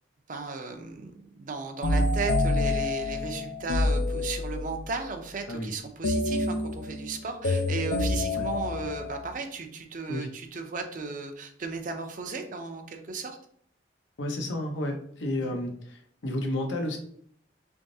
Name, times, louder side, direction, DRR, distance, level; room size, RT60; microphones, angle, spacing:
voice 1, 0.3-13.4 15.4-15.5, right 4 dB, 45° right, 5 dB, 0.5 m, -35 dB
sound 1, 1.8-4.8 6.0-9.3, left 2 dB, 65° left, 0.4 m, -27 dB
voice 2, 14.2-17.0, left 1 dB, 80° left, 3 dB, 0.8 m, -32 dB
3.8 x 3.5 x 2.7 m, 0.62 s
head